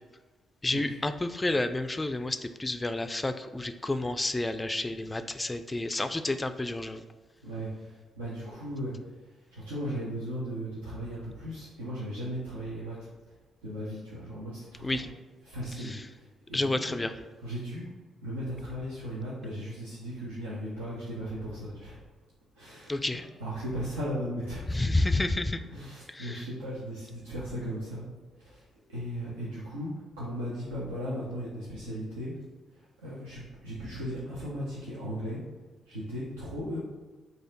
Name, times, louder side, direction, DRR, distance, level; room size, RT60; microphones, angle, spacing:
voice 1, 0.6-7.0 14.8-15.1 15.8-16.1 16.5-17.1 22.9-23.3 24.7-25.6 26.1-26.4, left 2 dB, 20° left, 9 dB, 0.3 m, -30 dB
voice 2, 7.4-8.9 9.5-13.0 13.6-15.0 15.4-17.0 17.4-17.9 18.2-22.0 22.6-24.8 25.7-28.1 28.4-29.9 30.2-32.3 32.7-35.4 35.9-36.8, equal, 80° right, -8 dB, 0.6 m, -37 dB
4.1 x 2.6 x 3.9 m, 1.3 s
figure-of-eight pair, 40°, 0 cm